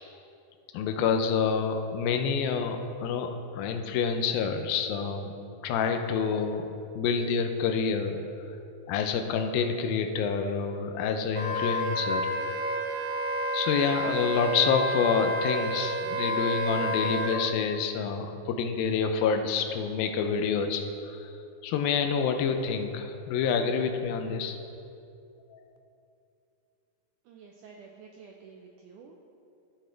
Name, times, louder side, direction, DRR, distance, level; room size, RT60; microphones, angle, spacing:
voice 1, 0.7-5.3 5.6-6.7 7.0-8.2 8.9-12.3 13.5-21.3 21.6-24.6 25.5-25.6, left 6 dB, 80° left, 5 dB, 2.3 m, -28 dB
Wind instrument woodwind instrument, 11.3-17.4, right 1 dB, 65° right, 1.7 m, -30 dB
voice 2, 27.3-29.3, right 5 dB, 85° right, 1 dB, 1.8 m, -50 dB
14.0 x 6.5 x 3.8 m, 2.6 s
omnidirectional pair, 4.3 m